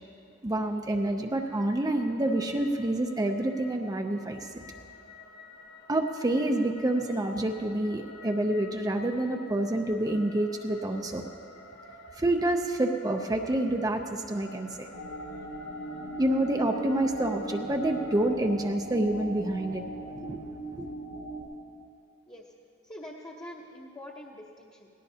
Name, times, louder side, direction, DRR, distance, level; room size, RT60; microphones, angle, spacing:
voice 1, 0.4-4.5 5.9-11.2 12.2-14.9 16.2-19.8 20.2-20.4 20.8-20.9, right 1 dB, 20° right, 3 dB, 0.6 m, -28 dB
sound 1, 1.3-18.3, left 2 dB, 55° left, 1.9 m, -50 dB
sound 2, 14.9-21.4, right 1 dB, 90° left, 2.4 m, -39 dB
voice 2, 22.8-24.9, left 1 dB, 20° left, -3 dB, 1.0 m, -44 dB
18.5 x 17.5 x 2.8 m, 2.5 s
head